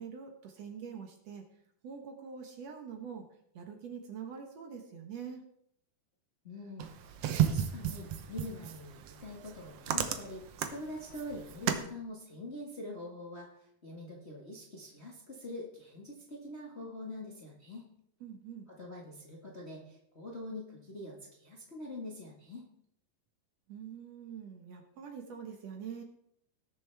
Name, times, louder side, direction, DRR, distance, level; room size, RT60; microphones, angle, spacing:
voice 1, 0.0-1.4 1.8-3.3 3.5-5.4 18.2-18.7 23.7-26.0, right 7 dB, 65° right, 4 dB, 1.9 m, -44 dB
voice 2, 6.4-17.9 18.7-22.7, left 1 dB, 50° left, -2 dB, 0.7 m, -45 dB
sound 1, 6.8-11.9, right 9 dB, 90° right, 1.3 m, -34 dB
19.0 x 7.0 x 3.4 m, 0.72 s
omnidirectional pair, 3.9 m